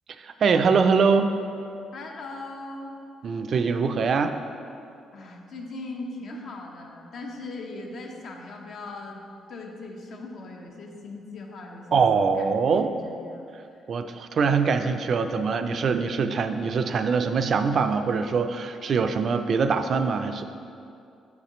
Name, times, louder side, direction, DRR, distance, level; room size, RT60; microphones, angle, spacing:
voice 1, 0.2-1.3 3.2-4.3 11.9-12.9 13.9-20.4, right 5 dB, 55° right, 8 dB, 0.4 m, -23 dB
voice 2, 1.9-3.0 5.1-9.2 9.5-13.5, left 2 dB, 65° left, 1 dB, 0.9 m, -39 dB
7.1 x 6.5 x 3.0 m, 2.5 s
cardioid pair, 90°, 0 cm